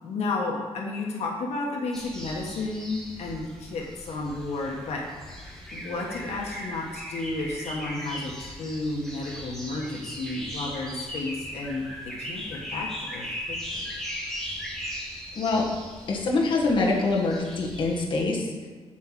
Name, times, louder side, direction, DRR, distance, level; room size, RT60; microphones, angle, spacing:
voice 1, 0.0-5.0 5.7-13.8, left 2 dB, 80° left, -1 dB, 1.5 m, -32 dB
sound 1, 1.9-18.0, equal, 5° left, 1.5 m, -38 dB
voice 2, 15.4-15.7 16.1-18.7, left 3 dB, 50° left, -3 dB, 1.7 m, -25 dB
9.2 x 4.7 x 7.5 m, 1.5 s
wide cardioid pair, 165°, 11 cm